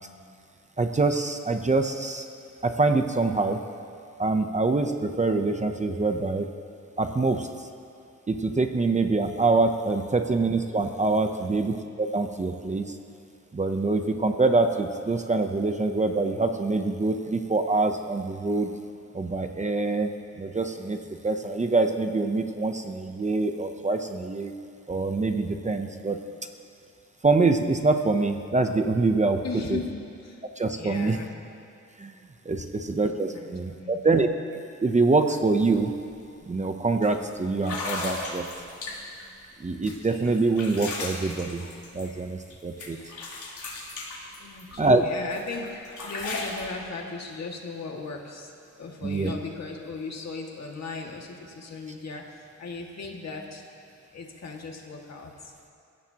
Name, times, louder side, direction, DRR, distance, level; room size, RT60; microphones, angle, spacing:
voice 1, 0.8-2.3 2.6-3.6 4.2-6.5 7.0-7.5 8.3-12.8 13.5-18.7 19.1-20.1 20.4-24.5 24.9-26.2 27.2-29.4 29.7-29.8 30.6-31.2 32.0-32.1 32.5-34.3 34.8-35.9 36.5-38.5 39.6-41.7 41.9-43.0 44.8-45.0 49.0-49.3, right 3 dB, 25° right, 6 dB, 0.7 m, -25 dB
voice 2, 29.4-30.4 30.8-31.3 33.3-34.0 38.8-39.3 44.4-48.5 48.8-53.6 54.1-55.3, left 4 dB, 60° left, 0 dB, 2.0 m, -37 dB
sound 1, 35.6-35.7 36.1-36.4 37.0-37.1 37.6-39.2 39.8-42.5 42.8-44.9 45.3-46.7, left 3 dB, 85° left, 3.6 m, -36 dB
29.0 x 16.0 x 2.9 m, 2.5 s
wide cardioid pair, 170°, 29 cm